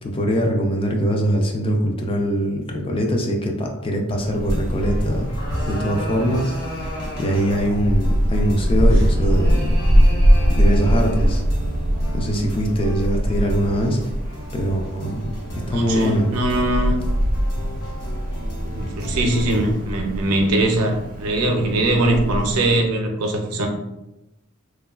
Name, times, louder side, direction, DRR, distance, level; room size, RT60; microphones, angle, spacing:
voice 1, 0.0-5.3 5.7-6.5 7.2-9.7 10.6-11.4 12.1-14.0 14.5-15.3 15.7-16.3, equal, 25° left, 1 dB, 0.3 m, -22 dB
Wind, 4.2-22.8, equal, 40° right, 0.4 m, -22 dB
sound 1, 4.4-19.8, equal, 70° left, 0.9 m, -36 dB
sound 2, 5.0-7.9 8.9-11.5, left 1 dB, 45° left, 1.2 m, -35 dB
voice 2, 15.7-17.0 18.6-23.7, right 1 dB, 85° right, 3 dB, 0.5 m, -21 dB
3.1 x 2.2 x 2.3 m, 0.95 s
head